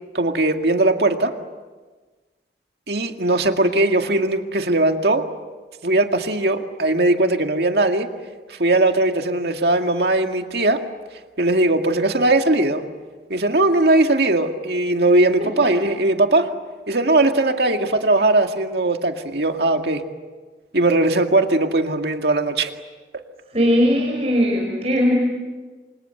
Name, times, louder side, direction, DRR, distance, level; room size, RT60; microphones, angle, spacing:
voice 1, 0.1-1.3 2.9-5.3 5.8-8.1 8.5-10.8 11.4-12.8 13.3-16.5 16.9-20.0 20.7-22.7, right 2 dB, 70° right, 5 dB, 2.1 m, -19 dB
voice 2, 23.5-25.1, equal, 35° right, 0 dB, 5.2 m, -19 dB
29.5 x 25.0 x 7.9 m, 1.3 s
head